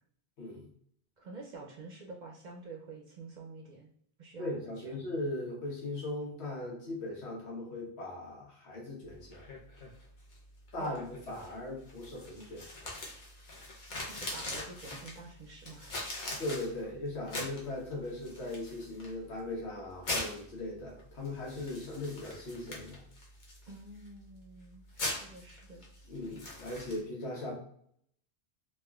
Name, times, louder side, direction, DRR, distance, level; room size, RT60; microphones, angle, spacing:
voice 1, 0.4-0.7 4.4-9.5 10.7-12.7 16.4-23.0 26.1-27.6, left 2 dB, 85° left, -2 dB, 1.2 m, -39 dB
voice 2, 1.2-3.9 4.2-5.0 10.8-11.0 14.0-16.0 23.7-25.8, right 3 dB, 55° right, 0 dB, 0.5 m, -48 dB
sound 1, 9.0-27.0, left 2 dB, 50° left, 0.8 m, -43 dB
3.3 x 2.4 x 2.3 m, 0.66 s
omnidirectional pair, 1.1 m